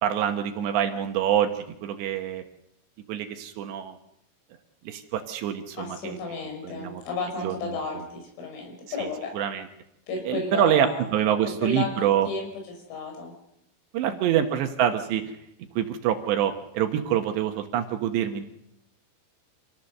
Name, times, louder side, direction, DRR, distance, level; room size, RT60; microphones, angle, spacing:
voice 1, 0.0-2.4 3.1-4.0 4.8-6.2 6.6-7.0 7.4-8.0 9.0-9.1 9.3-9.7 10.2-12.3 13.9-15.2 15.8-18.4, right 10 dB, 70° right, 6 dB, 3.1 m, -26 dB
voice 2, 5.8-9.3 10.1-11.1 11.6-12.5 12.9-13.3 14.0-14.4, left 4 dB, 90° left, 3 dB, 8.2 m, -33 dB
26.5 x 18.0 x 6.7 m, 0.81 s
omnidirectional pair, 5.8 m